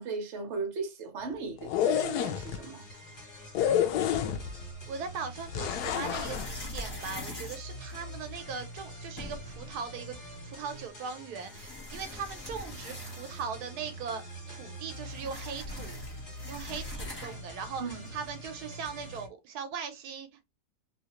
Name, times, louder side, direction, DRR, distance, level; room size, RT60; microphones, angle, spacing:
voice 1, 0.0-2.8 17.8-18.0, right 4 dB, 50° right, 1.1 m, -36 dB
sound 1, 1.6-2.6 3.5-4.6 5.5-6.5, left 10 dB, 85° left, 1.1 m, -29 dB
sound 2, 1.8-19.3, right 1 dB, 50° left, 1.9 m, -45 dB
voice 2, 3.7-4.6 4.9-10.2 10.5-16.0 16.5-20.4, right 6 dB, 80° right, 1.2 m, -40 dB
sound 3, 4.1-4.9 5.7-8.4 8.9-9.0 9.2-9.6 10.7-10.8 11.4-13.6 13.9-14.0 14.3-17.5, left 1 dB, 20° left, 0.8 m, -43 dB
3.1 x 2.8 x 2.9 m
omnidirectional pair, 1.7 m